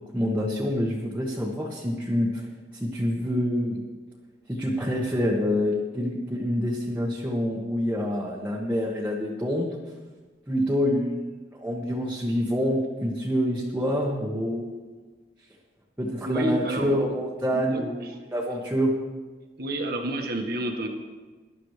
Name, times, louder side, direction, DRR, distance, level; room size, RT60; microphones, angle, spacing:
voice 1, 0.0-2.5 2.8-3.8 4.5-9.7 10.5-11.2 11.6-14.8 16.0-18.9, equal, 10° right, -5 dB, 1.5 m, -27 dB
voice 2, 16.2-17.0 17.5-18.2 19.6-20.9, right 1 dB, 60° right, 3 dB, 1.6 m, -30 dB
19.0 x 11.5 x 3.3 m, 1.3 s
head